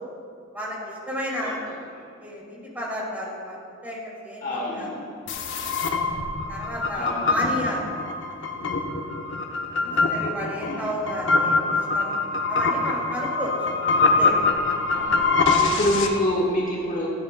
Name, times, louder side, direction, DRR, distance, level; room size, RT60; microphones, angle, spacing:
voice 1, 0.5-1.6 2.2-4.9 5.6-5.7 6.5-7.9 9.8-12.1 12.5-13.5 14.0-14.4, equal, 10° right, -5 dB, 2.3 m, -32 dB
voice 2, 4.4-5.1 6.9-7.6 10.5-10.9 14.9-15.2 15.6-17.1, left 1 dB, 40° left, -4 dB, 1.4 m, -27 dB
sound 1, 5.3-16.1, left 3 dB, 65° left, 0.8 m, -24 dB
12.5 x 10.5 x 2.2 m, 2.4 s
head